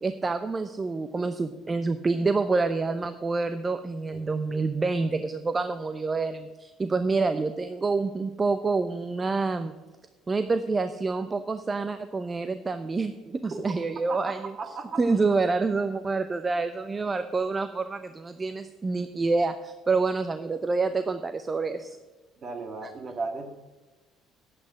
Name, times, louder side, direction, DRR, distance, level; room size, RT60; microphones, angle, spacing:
voice 1, 0.0-9.7 10.3-14.5 15.0-22.0 22.8-22.9, right 3 dB, 25° right, 10 dB, 0.7 m, -27 dB
voice 2, 14.1-15.0 22.4-23.5, right 4 dB, 45° right, 4 dB, 2.1 m, -35 dB
10.5 x 8.4 x 6.1 m, 1.3 s
hypercardioid pair, 55°, 0 cm